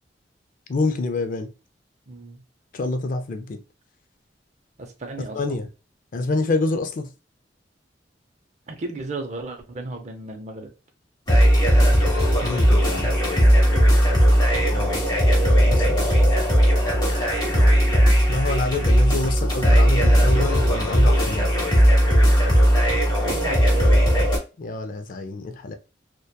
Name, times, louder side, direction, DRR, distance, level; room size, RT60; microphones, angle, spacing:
voice 1, 0.7-1.5 2.7-3.6 5.3-5.7 6.1-7.1 12.3-13.2 14.7-14.9 15.7-16.2 18.3-21.5 24.6-25.8, left 2 dB, 50° left, 0.4 m, -27 dB
voice 2, 2.1-2.4 4.8-5.6 8.7-10.7 23.3-24.0, right 2 dB, 40° right, 0.5 m, -34 dB
sound 1, 11.3-24.4, equal, 25° left, 1.0 m, -17 dB
2.8 x 2.2 x 2.2 m
head